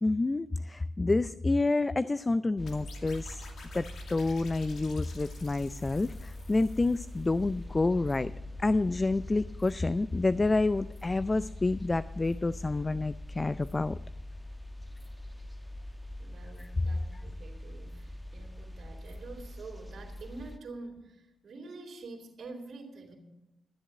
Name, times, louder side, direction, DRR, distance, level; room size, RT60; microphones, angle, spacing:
voice 1, 0.0-3.4 3.7-8.3 8.6-14.0, left 2 dB, 30° left, 15 dB, 0.4 m, -28 dB
sound 1, 2.6-20.6, left 1 dB, 10° left, 1.2 m, -43 dB
sound 2, 2.7-7.5, left 4 dB, 70° left, 2.3 m, -52 dB
voice 2, 16.2-23.1, right 3 dB, 60° right, -1 dB, 3.2 m, -46 dB
13.0 x 8.0 x 7.6 m, 0.96 s
supercardioid pair, 55°, 0 cm